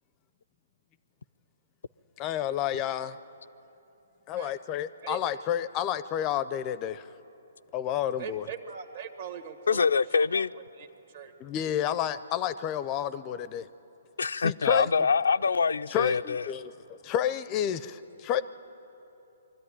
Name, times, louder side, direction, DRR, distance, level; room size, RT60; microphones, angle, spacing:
voice 1, 2.2-3.2 4.3-7.1 7.7-8.4 11.4-13.7 14.4-14.9 15.9-18.4, left 10 dB, 25° left, 0.4 m, -30 dB
voice 2, 8.2-9.9 10.3-10.4 10.8-10.9 11.1-11.3, right 7 dB, 50° right, 1.6 m, -40 dB
voice 3, 9.7-10.5 14.2-16.5, left 5 dB, 85° left, 0.4 m, -25 dB
22.0 x 13.5 x 10.0 m
hypercardioid pair, 150°, 0 cm